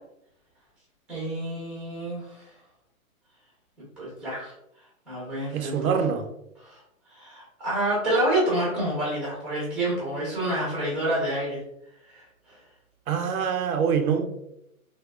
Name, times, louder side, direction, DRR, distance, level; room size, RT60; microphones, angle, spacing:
voice 1, 1.1-2.6 4.0-4.5 5.1-5.9 6.6-6.8 7.1-11.6 12.1-12.6, right 1 dB, ahead, 0.5 m, -28 dB
voice 2, 5.5-6.3 13.1-14.3, right 7 dB, 75° right, 0.6 m, -25 dB
3.4 x 2.2 x 2.3 m
hypercardioid pair, 130°, 43 cm